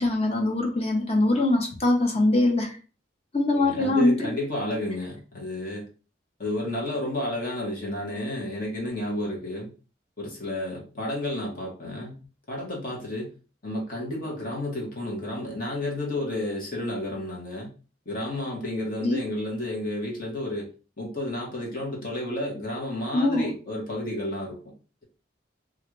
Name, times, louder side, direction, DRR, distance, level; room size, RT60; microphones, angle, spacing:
voice 1, 0.0-2.8 3.3-4.3 19.0-19.2 23.1-23.5, left 2 dB, 35° left, 1 dB, 0.8 m, -23 dB
voice 2, 3.5-5.9 6.4-9.7 10.2-12.2 12.5-13.3 13.6-17.7 18.0-20.7 21.0-24.6, left 1 dB, 50° left, -2 dB, 1.2 m, -31 dB
3.1 x 2.5 x 3.1 m, 0.34 s
head